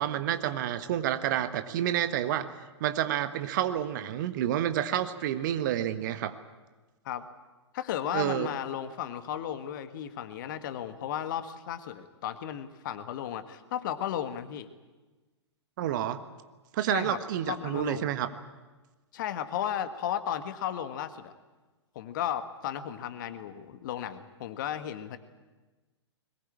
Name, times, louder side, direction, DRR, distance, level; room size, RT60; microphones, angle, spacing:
voice 1, 0.0-2.5 2.8-6.3 8.1-8.5 15.8-16.2 16.7-18.3, right 11 dB, 45° right, 10 dB, 1.3 m, -29 dB
voice 2, 7.7-14.7 16.9-17.2 17.4-18.1 19.1-21.3 21.9-25.2, left 10 dB, 45° left, 10 dB, 1.5 m, -34 dB
21.5 x 20.0 x 8.8 m, 1.2 s
figure-of-eight pair, 110°, 15 cm